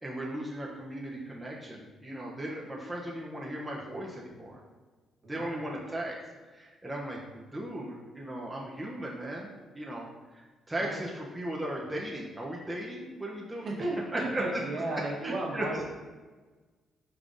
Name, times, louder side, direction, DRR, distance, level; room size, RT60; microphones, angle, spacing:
voice 1, 0.0-4.6 5.3-6.2 6.5-13.7 14.1-14.6 15.2-15.8, right 1 dB, 10° right, -4 dB, 0.7 m, -37 dB
voice 2, 5.2-5.6 10.8-11.0 13.6-15.8, right 2 dB, 55° right, -3 dB, 1.1 m, -34 dB
5.1 x 3.5 x 2.6 m, 1.3 s
cardioid pair, 90°, 0 cm